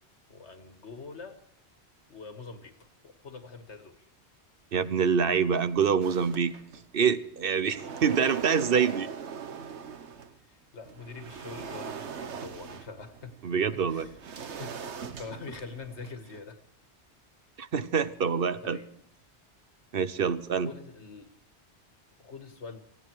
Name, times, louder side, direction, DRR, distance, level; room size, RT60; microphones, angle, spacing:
voice 1, 0.3-1.4 2.1-2.8 3.0-4.1 10.4-13.4 13.7-16.6 18.6-18.9 20.6-21.3 22.2-22.8, left 4 dB, 85° left, 8 dB, 2.0 m, -44 dB
voice 2, 4.7-6.6 6.9-9.1 13.4-14.1 17.6-18.8 19.9-20.7, right 6 dB, 60° right, 14 dB, 1.0 m, -26 dB
sound 1, 6.0-7.0 7.4-10.4 10.8-16.4, right 6 dB, 80° right, 1.3 m, -41 dB
18.5 x 16.5 x 4.7 m, 0.72 s
omnidirectional pair, 1.1 m